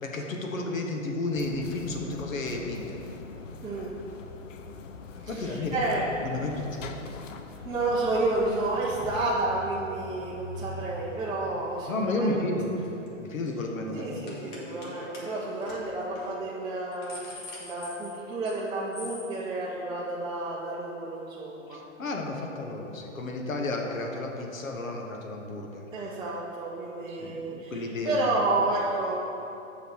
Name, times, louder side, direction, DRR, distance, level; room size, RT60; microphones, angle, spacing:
voice 1, 0.0-3.0 5.3-5.9 6.2-7.0 11.9-12.7 13.2-14.1 21.7-25.8 27.1-28.1, left 2 dB, 85° left, 1 dB, 1.4 m, -32 dB
sound 1, 1.3-9.4, left 5 dB, 70° left, 0.8 m, -43 dB
voice 2, 5.2-6.0 7.6-12.4 13.9-21.8 25.9-29.1, right 2 dB, 10° right, -8 dB, 0.9 m, -30 dB
sound 2, 8.4-13.2 13.8-16.0, left 1 dB, 25° left, 0.7 m, -44 dB
sound 3, 12.8-13.1 13.3-13.6 14.3-14.9 15.1-15.2 15.6-15.8 16.2-16.3 16.7-18.6 18.9-19.3, left 3 dB, 40° left, 2.1 m, -44 dB
7.4 x 5.8 x 6.4 m, 2.9 s
hypercardioid pair, 130°, 39 cm